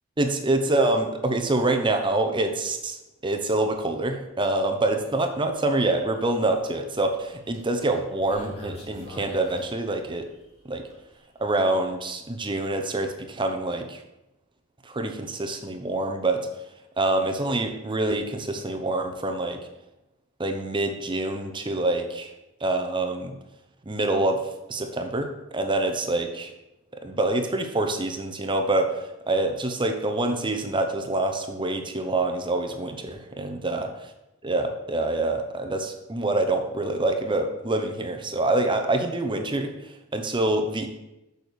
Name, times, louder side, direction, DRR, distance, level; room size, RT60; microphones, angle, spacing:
voice 1, 0.2-10.3 10.7-10.8 11.4-14.0 14.8-16.5 17.0-19.6 20.4-22.3 22.6-23.3 23.8-26.5 27.0-34.1 34.4-40.9, right 2 dB, 25° right, 5 dB, 0.8 m, -26 dB
sound 1, 5.1-5.3 5.7-6.4 7.2-10.4 10.9-11.0, left 1 dB, 30° left, 2.9 m, -43 dB
6.7 x 6.4 x 6.8 m, 0.95 s
head